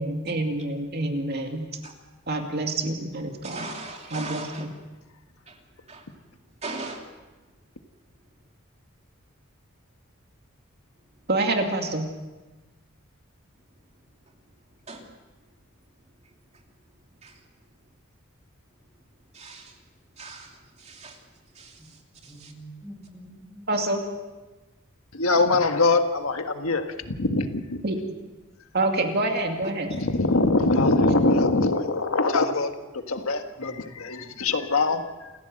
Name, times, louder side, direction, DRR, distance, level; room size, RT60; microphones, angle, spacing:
voice 1, 0.0-1.6 2.3-3.7 4.1-4.7 11.3-12.1 23.7-24.0 27.8-28.0 28.7-29.9, right 2 dB, 50° right, 3 dB, 2.5 m, -27 dB
voice 2, 3.4-4.7 5.5-5.6 5.9-6.0 6.6-7.1 14.9-15.0 17.2-17.4 19.3-19.8 20.2-21.2 21.5-22.5 29.9-30.0, right 3 dB, 30° right, 2 dB, 2.8 m, -39 dB
voice 3, 22.3-23.8 32.4-32.7 33.5-34.4, right 1 dB, 10° right, 2 dB, 5.6 m, -47 dB
voice 4, 25.1-27.8 29.9-35.3, left 3 dB, 80° left, 6 dB, 1.6 m, -23 dB
28.5 x 15.0 x 7.8 m, 1.2 s
head